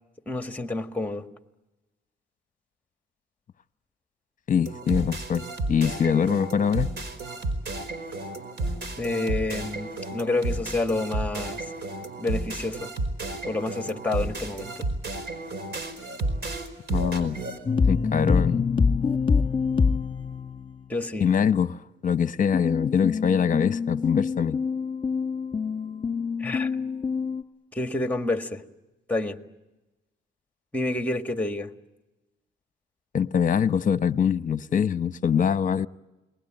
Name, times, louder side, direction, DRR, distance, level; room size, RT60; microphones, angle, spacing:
voice 1, 0.2-1.2 9.0-11.6 12.2-12.9 13.5-14.9 20.9-21.3 26.4-26.7 27.7-28.6 29.1-29.4 30.7-31.7, left 2 dB, 10° left, 1.9 m, -28 dB
voice 2, 4.5-5.4 5.7-6.9 16.9-17.4 17.9-18.6 21.2-21.8 22.0-24.6 33.1-35.9, left 7 dB, 40° left, 0.9 m, -23 dB
sound 1, 4.6-17.6, right 2 dB, 55° right, 4.7 m, -32 dB
sound 2, 17.7-20.8 22.5-27.4, left 5 dB, 25° left, 1.8 m, -25 dB
29.5 x 20.5 x 9.0 m
cardioid pair, 90°, 20 cm